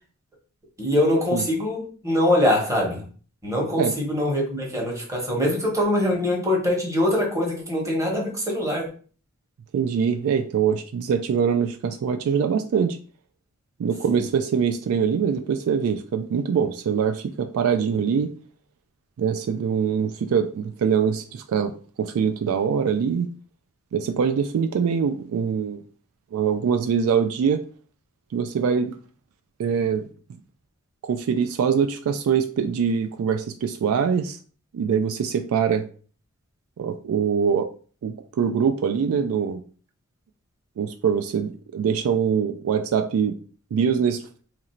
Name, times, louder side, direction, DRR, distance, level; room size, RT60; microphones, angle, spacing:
voice 1, 0.8-3.0 3.4-8.9 14.1-14.2, left 1 dB, 15° right, -1 dB, 1.1 m, -23 dB
voice 2, 9.7-13.0 13.8-18.3 19.2-21.7 22.0-23.3 23.9-25.8 26.3-27.6 28.3-28.9 29.6-30.0 31.0-34.4 34.7-35.8 36.8-37.7 38.0-39.6 40.8-43.4 43.7-44.2, right 7 dB, 65° right, 7 dB, 0.3 m, -23 dB
3.0 x 2.5 x 4.3 m, 0.41 s
head